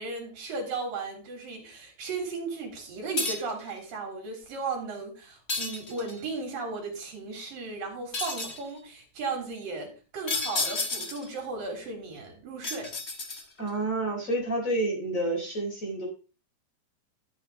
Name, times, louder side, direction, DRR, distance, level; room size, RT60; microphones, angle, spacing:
voice 1, 0.0-12.9, right 3 dB, 70° right, 2 dB, 5.3 m, -36 dB
sound 1, 3.2-3.6 5.5-6.3 8.1-8.7 10.3-11.3 12.6-13.7, left 3 dB, 55° left, 0.7 m, -31 dB
voice 2, 13.6-16.1, right 2 dB, 20° left, 1 dB, 3.8 m, -29 dB
13.5 x 8.1 x 3.8 m, 0.35 s
omnidirectional pair, 4.2 m